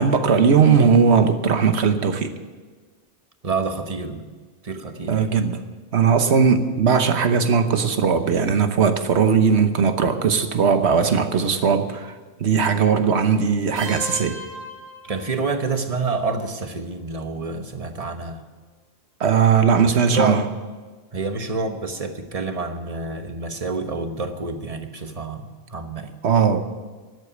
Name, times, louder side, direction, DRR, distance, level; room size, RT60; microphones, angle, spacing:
voice 1, 0.0-2.3 5.1-5.6 5.9-12.1 12.4-14.4 19.2-20.4 26.2-26.6, right 6 dB, 85° right, 8 dB, 1.3 m, -18 dB
voice 2, 3.4-4.3 4.6-5.3 15.0-18.4 19.9-20.4 21.1-26.1, right 3 dB, 35° right, 6 dB, 1.2 m, -28 dB
sound 1, 13.8-15.7, equal, 50° right, 2.4 m, -37 dB
12.5 x 8.3 x 9.8 m, 1.4 s
omnidirectional pair, 1.1 m